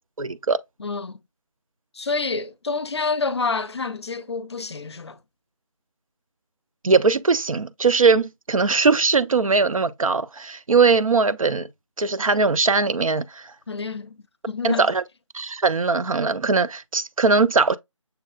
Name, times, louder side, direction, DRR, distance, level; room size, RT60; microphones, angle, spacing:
voice 1, 0.2-0.6 6.8-11.7 12.0-13.5 14.6-15.0 15.3-17.8, right 4 dB, 85° right, 0.5 m, -20 dB
voice 2, 0.8-1.2 1.9-5.2 13.7-14.9, left 4 dB, 55° left, 0.5 m, -28 dB
6.6 x 2.3 x 2.3 m
figure-of-eight pair, 160°, 17 cm